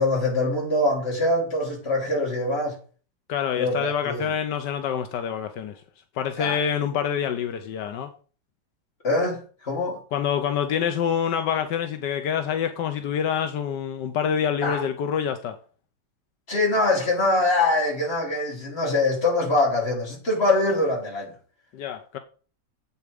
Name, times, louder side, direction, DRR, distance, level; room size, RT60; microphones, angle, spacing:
voice 1, 0.0-2.8 3.6-4.3 6.4-6.6 9.0-10.0 14.6-14.8 16.5-21.3, left 2 dB, 35° left, 3.4 m, -23 dB
voice 2, 3.3-5.8 6.2-8.1 10.1-15.6 21.7-22.2, left 8 dB, 80° left, 1.4 m, -26 dB
8.0 x 7.2 x 5.1 m
omnidirectional pair, 1.9 m